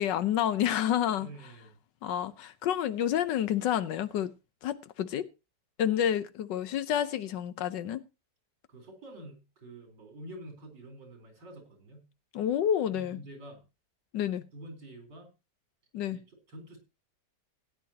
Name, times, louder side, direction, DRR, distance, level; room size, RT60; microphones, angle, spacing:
voice 1, 0.0-1.3 2.0-4.3 4.6-5.3 5.8-8.0 12.3-13.2 14.1-14.4 15.9-16.2, left 10 dB, 80° left, 1.5 m, -29 dB
voice 2, 1.2-1.8 8.7-12.1 12.9-13.6 14.5-15.3 16.1-16.8, right 1 dB, 75° right, 4.6 m, -47 dB
17.0 x 9.5 x 2.9 m
omnidirectional pair, 1.9 m